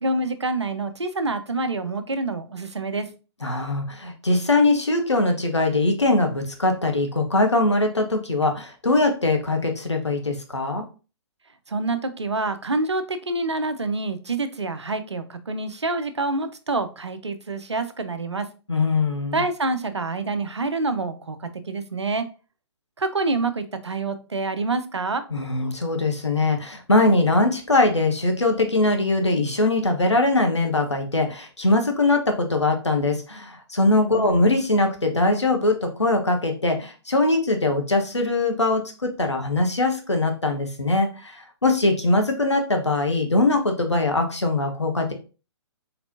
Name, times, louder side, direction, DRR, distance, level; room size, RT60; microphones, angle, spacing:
voice 1, 0.0-3.1 11.7-18.5 19.3-22.3 23.0-25.2 34.1-34.3, right 3 dB, 75° right, 10 dB, 0.6 m, -27 dB
voice 2, 3.4-10.8 18.7-19.4 25.3-45.1, left 2 dB, 80° left, 4 dB, 1.1 m, -22 dB
4.3 x 4.0 x 2.7 m, 0.34 s
figure-of-eight pair, 125°, 15 cm